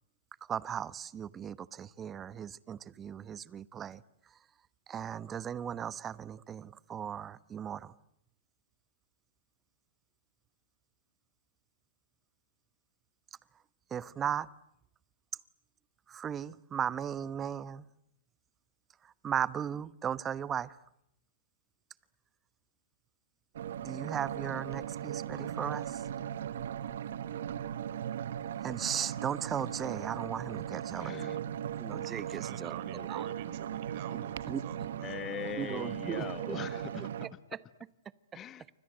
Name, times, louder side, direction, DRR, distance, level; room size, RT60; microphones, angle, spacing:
voice 1, 0.5-4.0 4.9-7.9 13.9-14.5 16.1-17.8 19.0-20.8 23.8-26.0 28.6-31.1 31.8-33.3 34.5-34.6 35.6-36.6, right 8 dB, 20° right, 1.1 m, -37 dB
sound 1, 23.5-37.3, right 10 dB, 70° right, 1.5 m, -38 dB
voice 2, 30.9-31.4 35.0-37.1 38.3-38.6, left 10 dB, 25° left, 1.6 m, -41 dB
voice 3, 32.4-35.2, right 10 dB, 50° right, 4.6 m, -46 dB
29.5 x 25.5 x 7.9 m
hypercardioid pair, 125°, 0 cm